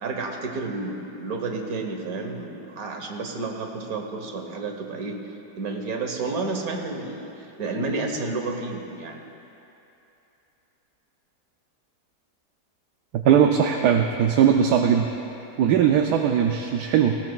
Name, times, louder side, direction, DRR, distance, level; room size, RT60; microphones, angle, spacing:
voice 1, 0.0-9.2, right 3 dB, 60° right, 2 dB, 1.7 m, -31 dB
voice 2, 13.1-15.1 15.6-17.2, right 8 dB, 80° right, 3 dB, 1.2 m, -19 dB
19.5 x 17.0 x 2.4 m, 2.9 s
omnidirectional pair, 1.8 m